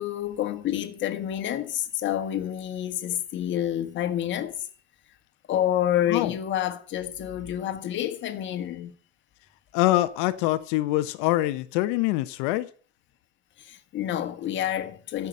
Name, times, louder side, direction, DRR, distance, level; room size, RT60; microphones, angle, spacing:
voice 1, 0.0-4.7 5.5-8.9 13.6-15.3, left 11 dB, 35° left, 1.7 m, -28 dB
voice 2, 9.7-12.7, left 17 dB, 60° left, 1.0 m, -24 dB
14.5 x 6.0 x 7.8 m
supercardioid pair, 115°, 31 cm